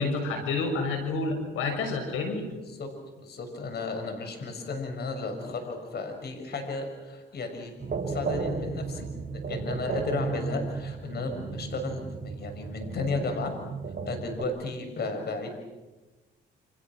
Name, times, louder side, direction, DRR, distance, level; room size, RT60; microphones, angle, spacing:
voice 1, 0.0-2.4, left 3 dB, 90° left, 4 dB, 6.8 m, -29 dB
voice 2, 2.5-2.9 3.2-7.7 8.1-9.1 9.3-13.5 14.0-15.5, left 3 dB, 55° left, 5 dB, 6.6 m, -34 dB
sound 1, 7.8-14.4, right 4 dB, 45° right, 7.3 m, -34 dB
29.5 x 28.0 x 6.3 m, 1.1 s
cardioid pair, 90°, 20 cm